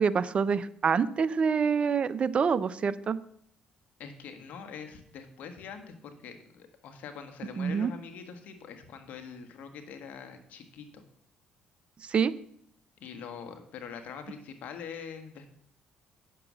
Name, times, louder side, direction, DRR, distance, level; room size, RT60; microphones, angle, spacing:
voice 1, 0.0-3.2 7.6-7.9 12.0-12.3, right 6 dB, 45° right, 15 dB, 0.5 m, -26 dB
voice 2, 4.0-11.0 13.0-15.5, left 6 dB, 75° left, 7 dB, 1.5 m, -44 dB
8.7 x 6.8 x 6.3 m, 0.67 s
cardioid pair, 90°, 3 cm